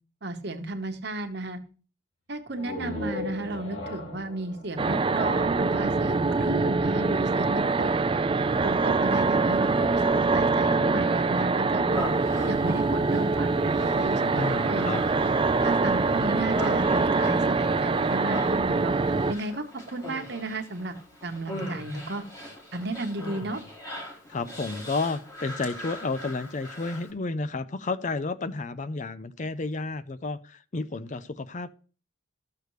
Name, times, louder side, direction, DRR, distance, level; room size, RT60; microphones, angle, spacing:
voice 1, 0.2-1.6 2.3-7.9 8.6-12.0 12.4-15.0 15.6-18.9 19.3-20.9 21.2-22.2 22.7-23.6, right 2 dB, 55° right, 1.2 m, -33 dB
sound 1, 2.5-6.1, left 1 dB, 65° left, 2.6 m, -38 dB
sound 2, 4.8-19.3, right 3 dB, 25° right, 0.3 m, -24 dB
Human voice, 11.9-27.1, left 1 dB, 15° left, 2.3 m, -40 dB
voice 2, 14.3-15.0 24.3-31.7, left 3 dB, 35° left, 0.5 m, -31 dB
13.5 x 6.6 x 3.2 m
head